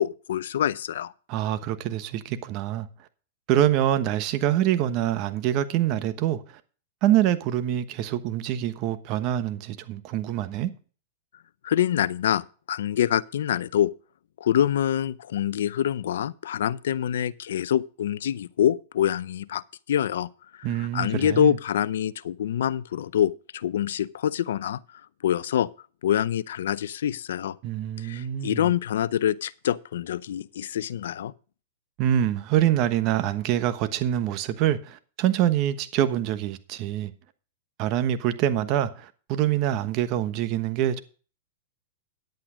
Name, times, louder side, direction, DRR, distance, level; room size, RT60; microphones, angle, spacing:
voice 1, 0.0-1.1 11.6-13.9 14.4-19.6 19.9-25.7 26.0-27.6 28.0-31.3, left 10 dB, 75° left, 0.6 m, -26 dB
voice 2, 1.3-2.9 3.5-6.6 7.0-10.7 20.6-21.6 27.6-28.7 32.0-37.1 37.8-41.0, right 11 dB, 40° right, 1.1 m, -25 dB
10.5 x 8.6 x 5.0 m
hypercardioid pair, 135°, 0 cm